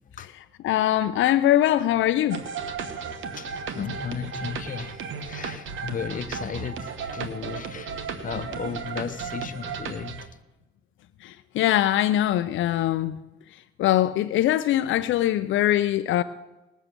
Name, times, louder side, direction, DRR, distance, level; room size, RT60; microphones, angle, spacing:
voice 1, 0.6-2.4 11.2-13.2 13.8-16.2, left 13 dB, 75° left, 0.5 m, -22 dB
sound 1, 2.3-10.3, right 6 dB, 75° right, 1.2 m, -35 dB
voice 2, 3.3-10.3, left 7 dB, 40° left, 0.9 m, -35 dB
19.0 x 7.3 x 6.7 m
cardioid pair, 90°, 20 cm